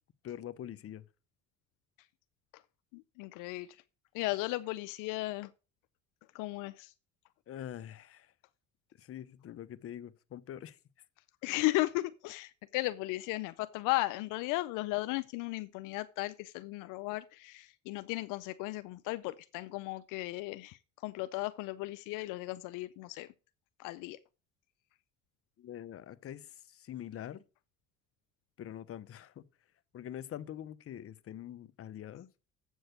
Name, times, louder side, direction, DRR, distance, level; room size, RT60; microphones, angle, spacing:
voice 1, 0.2-1.0 7.5-8.3 9.0-10.8 25.6-27.4 28.6-29.4 29.9-32.3, left 11 dB, 45° left, 0.8 m, -44 dB
voice 2, 2.9-3.7 4.1-5.5 6.3-6.9 11.4-20.8 21.0-23.3 23.8-24.2, left 19 dB, 80° left, 0.5 m, -35 dB
7.9 x 6.4 x 6.4 m
supercardioid pair, 90°, 31 cm